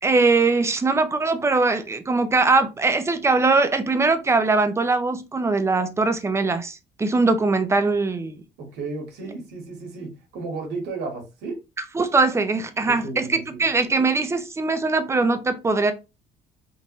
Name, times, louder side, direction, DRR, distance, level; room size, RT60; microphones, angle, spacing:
voice 1, 0.0-8.4 11.9-15.9, right 3 dB, 15° right, 0.5 m, -21 dB
voice 2, 8.6-11.6 12.8-13.6, right 3 dB, 80° right, 1.4 m, -33 dB
3.6 x 2.6 x 3.0 m
cardioid pair, 110°, 17 cm